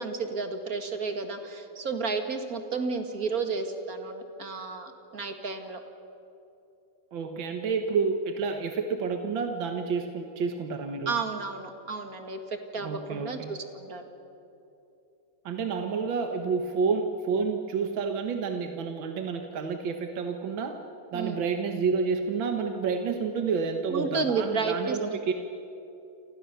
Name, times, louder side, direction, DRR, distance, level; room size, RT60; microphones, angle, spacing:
voice 1, 0.0-5.8 11.1-14.1 21.1-21.4 23.9-25.2, right 4 dB, 45° right, 6 dB, 2.3 m, -32 dB
voice 2, 7.1-11.2 12.8-13.5 15.5-20.8 21.1-25.3, right 5 dB, 70° right, 5 dB, 2.0 m, -29 dB
29.5 x 26.5 x 6.8 m, 2.8 s
omnidirectional pair, 2.2 m